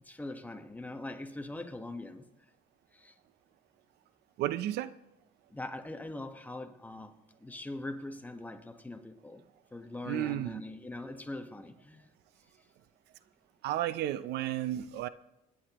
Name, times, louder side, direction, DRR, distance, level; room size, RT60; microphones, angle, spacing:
voice 1, 0.0-2.2 2.9-3.1 5.5-9.4 9.7-12.1, left 2 dB, 10° left, 1.2 m, -42 dB
voice 2, 4.4-4.9 10.0-10.6 13.6-15.1, right 13 dB, 75° right, 0.6 m, -32 dB
26.0 x 10.5 x 3.0 m
cardioid pair, 110°, 17 cm